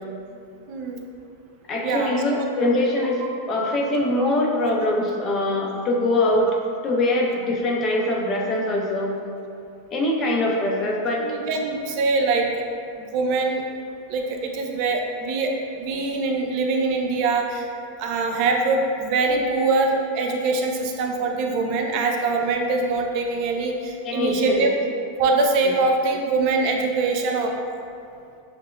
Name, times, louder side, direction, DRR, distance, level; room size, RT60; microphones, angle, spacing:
voice 1, 0.7-1.0 1.8-2.4 11.2-12.7 13.0-13.6 14.1-15.5 15.8-17.7 18.0-24.7 25.2-27.5, right 3 dB, 50° right, 2 dB, 0.4 m, -23 dB
voice 2, 1.7-3.2 3.5-6.5 6.8-9.1 9.9-11.3 24.0-24.7 25.6-25.7, left 1 dB, 30° left, -1 dB, 0.6 m, -23 dB
6.2 x 2.1 x 2.2 m, 2.4 s
supercardioid pair, 130°, 0 cm